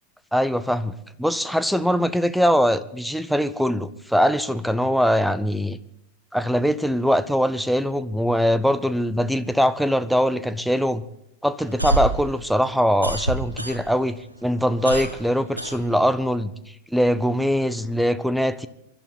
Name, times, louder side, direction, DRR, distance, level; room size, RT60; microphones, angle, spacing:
voice 1, 0.3-5.8 6.3-11.0 11.4-16.5 16.9-18.7, equal, ahead, 15 dB, 0.7 m, -22 dB
sound 1, 11.6-14.1 14.4-16.4, right 2 dB, 85° right, 1.2 m, -27 dB
24.0 x 12.0 x 4.1 m, 0.78 s
figure-of-eight pair, 90°, 0 cm